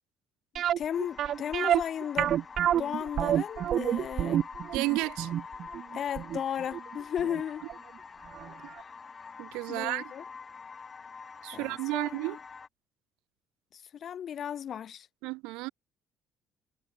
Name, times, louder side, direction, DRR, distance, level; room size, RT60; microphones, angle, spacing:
sound 1, 0.6-7.4 7.7-7.8 8.4-8.5 8.8-8.9, right 10 dB, 60° right, 1.3 m, -28 dB
voice 1, 0.8-2.4 2.8-4.4 5.9-7.6 9.7-10.2 11.5-12.4 13.7-15.1, left 9 dB, 55° left, 4.7 m, -35 dB
sound 2, 0.9-12.7, left 5 dB, 35° left, 4.9 m, -46 dB
voice 2, 4.7-5.3 9.4-10.0 11.4-12.4 15.2-15.7, right 23 dB, 85° right, 1.2 m, -32 dB
supercardioid pair, 80°, 0 cm